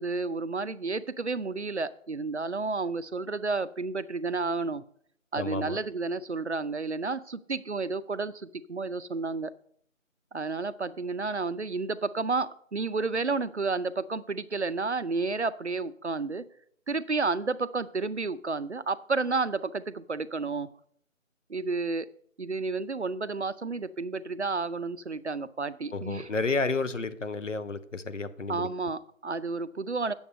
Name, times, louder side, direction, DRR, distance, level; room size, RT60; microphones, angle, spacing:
voice 1, 0.0-4.8 5.3-9.5 10.3-16.4 16.9-20.7 21.5-22.1 22.4-26.3 28.5-30.1, right 3 dB, 55° right, 0.5 m, -31 dB
voice 2, 5.3-5.8 25.9-28.7, left 3 dB, 65° left, 0.9 m, -31 dB
9.4 x 7.1 x 5.2 m
figure-of-eight pair, 175°, 40 cm